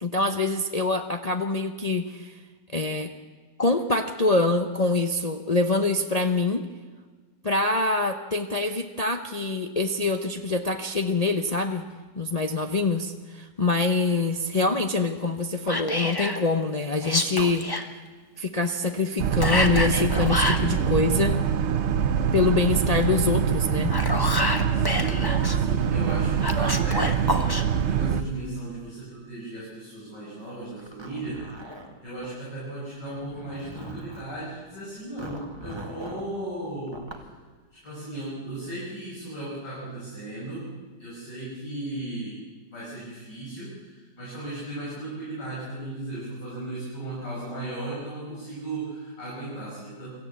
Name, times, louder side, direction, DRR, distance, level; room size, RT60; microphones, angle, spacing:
voice 1, 0.0-2.3 2.7-3.1 3.6-6.6 7.4-11.9 12.1-17.7 18.4-21.3 22.3-24.0, left 3 dB, 30° left, 5 dB, 0.7 m, -25 dB
Whispering, 15.7-16.4 17.0-17.9 19.4-20.7 23.7-25.6 26.4-27.6, left 2 dB, 15° left, 1.1 m, -27 dB
Boat Water vehicle, 19.2-28.2, right 8 dB, 50° right, 0.9 m, -24 dB
voice 2, 24.7-31.4 31.7-37.3 37.8-40.7 41.0-42.4 42.7-50.1, right 2 dB, 80° left, -6 dB, 6.5 m, -36 dB
Zipper (clothing), 30.8-32.3 33.1-34.4 35.2-36.3 36.9-37.3, right 2 dB, 15° right, 1.8 m, -41 dB
24.5 x 14.5 x 8.2 m, 1.4 s
omnidirectional pair, 1.9 m